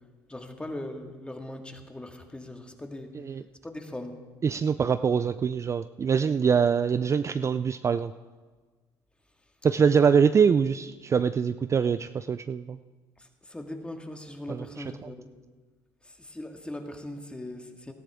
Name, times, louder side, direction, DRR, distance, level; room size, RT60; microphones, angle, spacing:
voice 1, 0.3-3.1 3.6-4.2 13.2-15.3 16.0-17.9, left 1 dB, 10° left, 4 dB, 1.9 m, -40 dB
voice 2, 4.4-8.1 9.6-12.8 14.5-14.6 15.0-15.1, right 6 dB, 35° right, 12 dB, 0.4 m, -24 dB
18.0 x 13.5 x 3.6 m, 1.4 s
hypercardioid pair, 65°, 9 cm